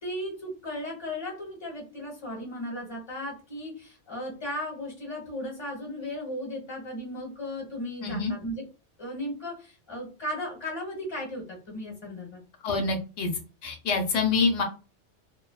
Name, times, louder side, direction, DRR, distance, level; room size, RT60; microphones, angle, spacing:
voice 1, 0.0-8.7 9.0-12.4, left 1 dB, 25° left, -1 dB, 1.1 m, -36 dB
voice 2, 12.6-13.3 13.6-14.6, left 4 dB, 90° left, 3 dB, 1.0 m, -26 dB
2.6 x 2.1 x 2.3 m, 0.32 s
omnidirectional pair, 1.2 m